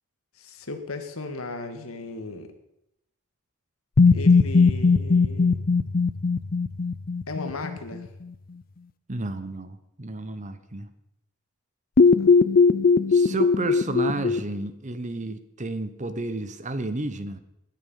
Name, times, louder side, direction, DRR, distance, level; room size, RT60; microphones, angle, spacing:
voice 1, 0.4-2.5 4.1-5.6 7.3-8.0 12.2-12.3, left 2 dB, 80° left, 7 dB, 2.0 m, -36 dB
sound 1, 4.0-7.9 12.0-14.4, left 4 dB, 40° left, 0.5 m, -19 dB
voice 2, 9.1-10.9 13.1-17.4, right 2 dB, 35° right, 11 dB, 1.1 m, -32 dB
19.5 x 9.7 x 5.6 m, 0.84 s
head